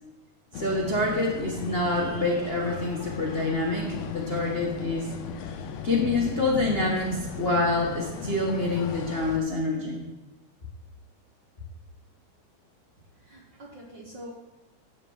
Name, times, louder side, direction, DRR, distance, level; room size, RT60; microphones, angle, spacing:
sound 1, 0.5-9.4, left 6 dB, 70° left, 1.7 m, -36 dB
voice 1, 0.5-5.1 5.8-10.0, left 2 dB, 45° left, -3 dB, 0.7 m, -27 dB
voice 2, 13.2-14.3, equal, 55° right, -2 dB, 1.3 m, -44 dB
9.1 x 6.9 x 7.2 m, 1.1 s
omnidirectional pair, 3.6 m